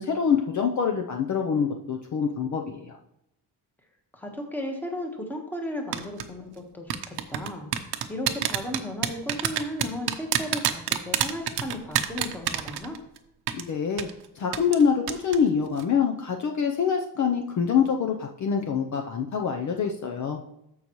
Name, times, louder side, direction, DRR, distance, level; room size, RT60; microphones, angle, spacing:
voice 1, 0.0-3.0 13.5-14.1 14.4-20.4, left 6 dB, 45° left, 3 dB, 0.7 m, -25 dB
voice 2, 4.1-13.0, left 1 dB, 5° left, 2 dB, 1.3 m, -35 dB
sound 1, 5.9-6.2 6.9-13.2 13.5-13.6 14.0-14.1 14.5-14.8 15.1-15.4 15.7-15.8, right 11 dB, 75° right, 0.8 m, -26 dB
14.0 x 5.5 x 3.1 m, 0.82 s
cardioid pair, 155°, 40 cm